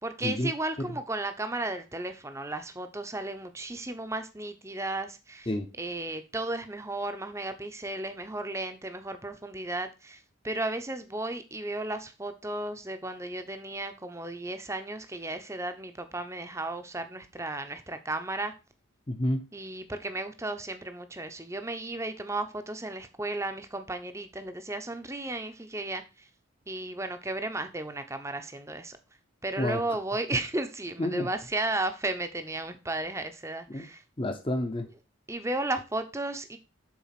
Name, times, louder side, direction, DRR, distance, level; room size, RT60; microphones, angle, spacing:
voice 1, 0.0-5.5 5.8-18.6 19.5-26.3 26.7-29.0 29.4-34.0 35.3-36.6, right 2 dB, 15° right, 0.7 m, -34 dB
voice 2, 19.1-19.4 29.6-29.8 31.0-31.3 33.7-33.9 34.2-34.9, left 1 dB, 25° left, 0.8 m, -29 dB
7.2 x 4.2 x 5.8 m
head